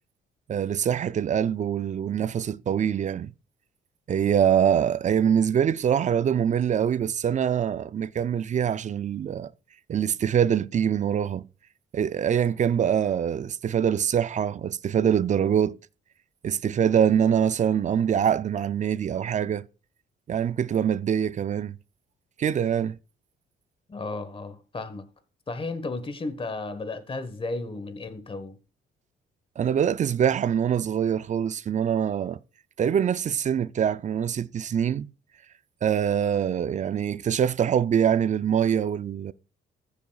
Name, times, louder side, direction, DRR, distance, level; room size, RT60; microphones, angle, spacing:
voice 1, 0.5-3.3 4.1-9.5 9.9-11.5 11.9-15.8 16.4-19.7 20.3-21.8 22.4-23.0 29.6-32.4 32.8-35.1 35.8-39.3, right 8 dB, 40° right, 0.4 m, -24 dB
voice 2, 23.9-25.0 25.5-28.6, left 3 dB, 25° left, 1.3 m, -34 dB
14.0 x 6.9 x 2.3 m
cardioid pair, 90°, 20 cm